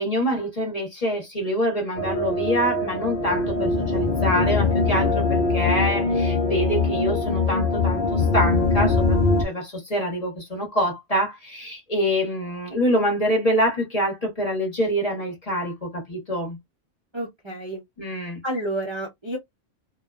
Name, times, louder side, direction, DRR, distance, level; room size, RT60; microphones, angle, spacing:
voice 1, 0.0-16.6 18.0-18.4, equal, 30° left, 1.0 m, -25 dB
sound 1, 2.0-9.4, left 3 dB, 55° left, 0.6 m, -22 dB
voice 2, 17.1-17.8 18.4-19.4, right 1 dB, 30° right, 0.6 m, -30 dB
2.5 x 2.2 x 2.3 m
omnidirectional pair, 1.4 m